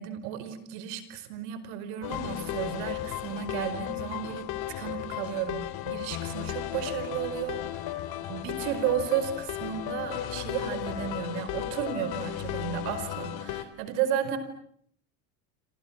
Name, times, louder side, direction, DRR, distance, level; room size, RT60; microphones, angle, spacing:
voice 1, 0.0-4.4 4.8-7.8 8.3-14.4, right 9 dB, 75° right, 12 dB, 5.1 m, -33 dB
sound 1, 2.0-13.6, left 13 dB, 60° left, 3.0 m, -35 dB
28.0 x 27.5 x 7.5 m, 0.65 s
supercardioid pair, 105°, 42 cm